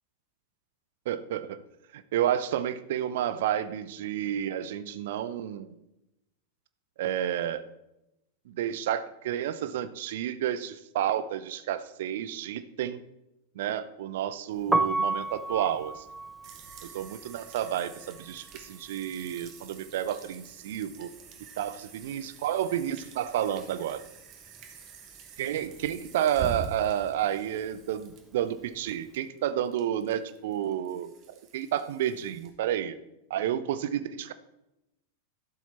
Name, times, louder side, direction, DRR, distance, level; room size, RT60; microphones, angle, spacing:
voice 1, 1.1-1.6 1.9-5.7 7.0-7.6 8.5-13.0 13.6-16.0 16.9-21.1 21.6-24.0 25.4-31.1 31.5-33.0 33.3-34.3, right 10 dB, 55° right, 14 dB, 0.6 m, -30 dB
Piano, 14.6-20.5 20.8-22.4 22.6-29.1, right 2 dB, 5° right, 0.4 m, -34 dB
sound 1, 16.4-32.5, right 6 dB, 40° right, 1.6 m, -46 dB
12.5 x 7.3 x 4.2 m, 0.90 s
figure-of-eight pair, 90°, 0 cm